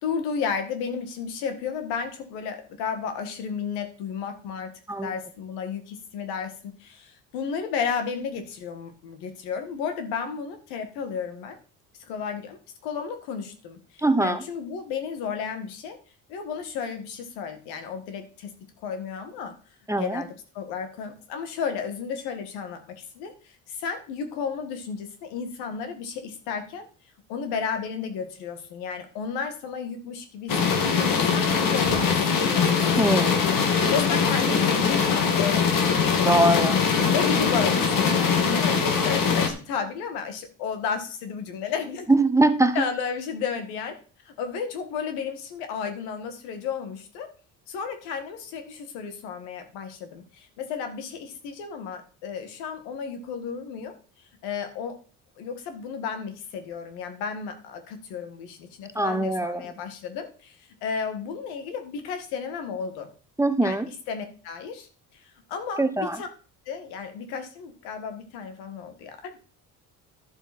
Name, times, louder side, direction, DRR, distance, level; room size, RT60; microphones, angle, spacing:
voice 1, 0.0-4.7 5.0-11.6 12.1-16.0 16.3-18.5 18.8-19.6 19.9-20.3 20.5-26.9 27.3-33.2 33.7-36.7 37.1-42.1 42.7-44.0 44.3-47.3 47.7-53.9 54.4-55.0 55.4-63.1 63.6-63.8 64.1-64.9 65.1-66.3 66.7-69.4, left 6 dB, 90° left, 7 dB, 1.9 m, -33 dB
voice 2, 14.0-14.4 19.9-20.2 33.0-33.4 36.2-36.8 42.1-42.8 58.9-59.6 63.4-63.9 65.8-66.2, right 2 dB, 10° right, 10 dB, 1.0 m, -22 dB
sound 1, 30.5-39.5, left 6 dB, 60° left, 2.2 m, -22 dB
12.0 x 7.0 x 4.3 m, 0.38 s
supercardioid pair, 80°, 37 cm